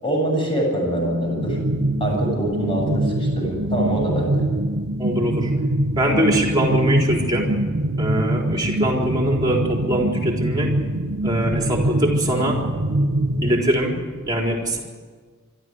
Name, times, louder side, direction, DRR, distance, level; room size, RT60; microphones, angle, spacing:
voice 1, 0.0-1.6 2.0-4.4, right 1 dB, 25° left, 0 dB, 7.5 m, -24 dB
sound 1, 1.4-13.6, right 1 dB, 65° right, 1.1 m, -24 dB
voice 2, 5.0-5.5 5.9-7.5 8.0-10.7 11.2-12.6 13.4-14.0 14.3-14.8, equal, 20° right, 0 dB, 4.1 m, -22 dB
26.0 x 13.0 x 9.5 m, 1.5 s
head